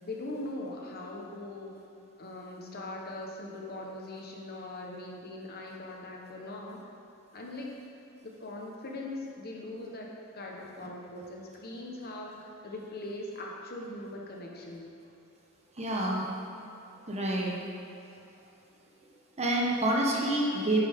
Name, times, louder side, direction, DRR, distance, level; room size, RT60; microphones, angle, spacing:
voice 1, 0.0-1.8 2.2-6.9 7.3-7.8 8.2-10.1 10.3-14.9, left 2 dB, 50° left, -1 dB, 1.0 m, -41 dB
voice 2, 15.8-16.3 17.1-17.6 19.4-20.8, right 1 dB, 30° right, -2 dB, 1.1 m, -28 dB
9.7 x 6.8 x 3.6 m, 2.9 s
head